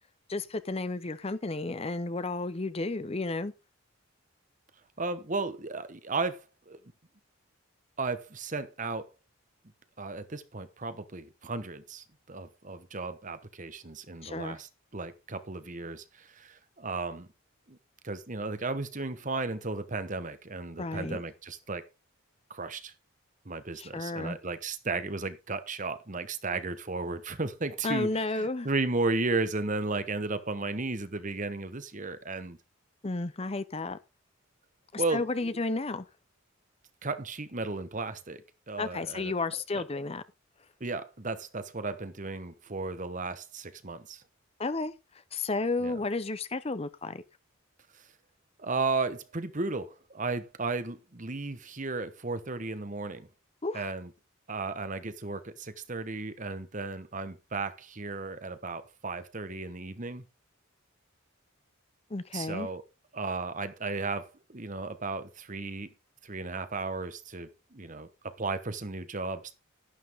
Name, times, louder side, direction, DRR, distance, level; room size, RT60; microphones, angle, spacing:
voice 1, 0.3-3.5 14.2-14.6 20.8-21.2 23.8-24.4 27.8-28.7 33.0-34.0 34.9-36.0 38.8-40.2 44.6-44.9 45.3-47.2 53.6-53.9 62.1-62.7, left 3 dB, 30° left, 0.7 m, -32 dB
voice 2, 5.0-6.8 8.0-9.1 10.0-17.3 17.7-17.8 18.0-21.8 22.5-22.9 23.4-32.6 35.0-35.5 37.0-39.3 39.7-39.8 40.8-44.2 45.8-46.0 48.6-53.3 53.7-54.1 54.5-60.2 62.3-62.9 63.1-65.9 66.2-69.5, right 3 dB, 35° right, 1.1 m, -34 dB
12.0 x 11.5 x 3.6 m
head